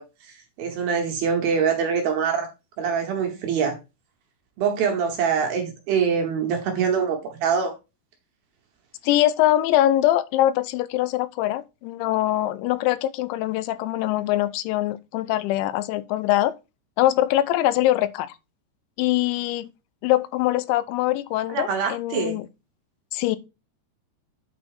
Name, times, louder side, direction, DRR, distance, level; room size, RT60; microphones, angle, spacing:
voice 1, 0.0-2.5 2.8-3.8 4.6-7.7 21.5-22.4, right 6 dB, 70° right, 2.5 m, -24 dB
voice 2, 9.0-16.5 17.0-18.4 19.0-19.7 20.0-22.5 23.1-23.4, left 14 dB, 85° left, 2.9 m, -23 dB
8.8 x 4.2 x 4.8 m
omnidirectional pair, 5.3 m